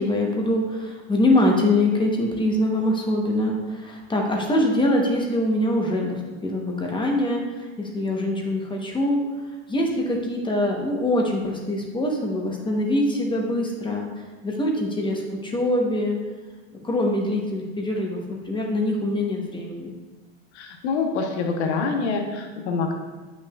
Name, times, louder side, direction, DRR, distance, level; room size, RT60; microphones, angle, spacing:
voice 1, 0.0-9.2 9.7-14.1 14.4-16.2 16.8-19.9, left 1 dB, 15° left, 0 dB, 0.9 m, -24 dB
voice 2, 20.5-22.9, left 4 dB, 85° left, 3 dB, 1.0 m, -26 dB
8.5 x 5.9 x 2.4 m, 1.3 s
supercardioid pair, 120°, 33 cm